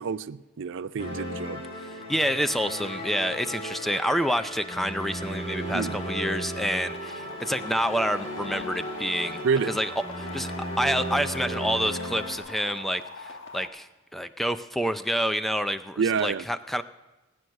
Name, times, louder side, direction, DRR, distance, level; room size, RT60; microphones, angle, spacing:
voice 1, 0.0-1.6 5.7-6.0 9.4-9.8 16.0-16.4, right 5 dB, 65° right, 16 dB, 0.4 m, -28 dB
sound 1, 1.0-12.4, equal, 30° left, 2.9 m, -35 dB
voice 2, 2.1-9.9 10.2-10.5 10.8-16.8, equal, ahead, 11 dB, 0.4 m, -28 dB
sound 2, 6.9-13.7, left 4 dB, 65° left, 1.5 m, -42 dB
17.5 x 9.3 x 6.4 m, 1.1 s
head